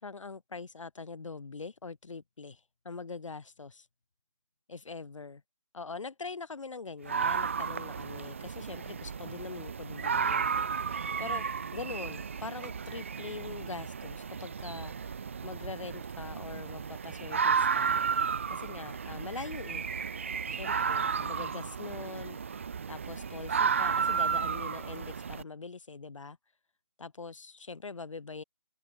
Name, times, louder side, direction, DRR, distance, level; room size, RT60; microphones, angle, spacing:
voice 1, 0.0-3.9 4.7-5.4 5.7-18.0 18.5-19.8 20.6-22.4 22.9-26.4 27.0-28.4, left 4 dB, 65° left, 3.1 m, -43 dB
sound 1, 7.1-25.4, right 6 dB, 25° right, 0.4 m, -33 dB
open air
figure-of-eight pair, 155°, 18 cm